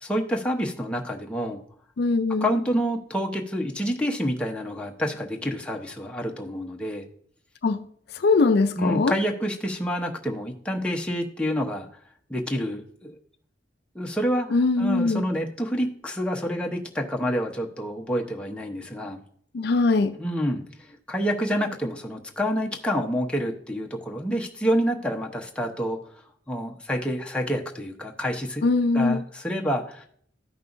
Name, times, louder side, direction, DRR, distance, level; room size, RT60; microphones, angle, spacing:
voice 1, 0.0-1.6 2.4-7.0 8.8-11.9 12.3-13.2 13.9-14.5 14.8-19.2 20.2-20.6 20.9-26.0 26.5-28.6 28.9-30.1, equal, 5° left, 0.9 m, -28 dB
voice 2, 2.0-2.5 7.6-7.9 8.1-9.1 14.5-15.2 19.5-20.2 28.6-29.2, left 3 dB, 60° left, 0.4 m, -21 dB
13.5 x 5.5 x 2.6 m
head